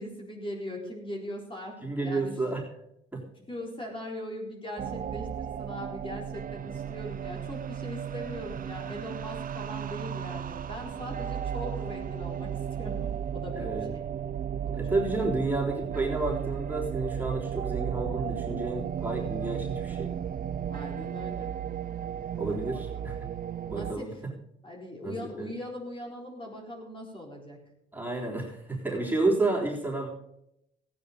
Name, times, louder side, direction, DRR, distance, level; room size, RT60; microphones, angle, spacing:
voice 1, 0.0-2.4 3.5-14.1 14.6-14.8 15.1-15.2 20.7-21.6 22.5-23.1 23.7-24.2 24.6-27.6, left 1 dB, 25° left, 0 dB, 4.1 m, -40 dB
voice 2, 1.8-2.6 3.1-3.2 13.5-13.9 14.7-20.1 22.4-23.2 23.6-24.3 25.0-25.5 27.9-30.1, right 2 dB, 10° right, -3 dB, 3.6 m, -30 dB
sound 1, 4.8-23.9, right 9 dB, 45° right, 0.6 m, -34 dB
15.5 x 9.5 x 5.2 m, 0.79 s
cardioid pair, 90°, 20 cm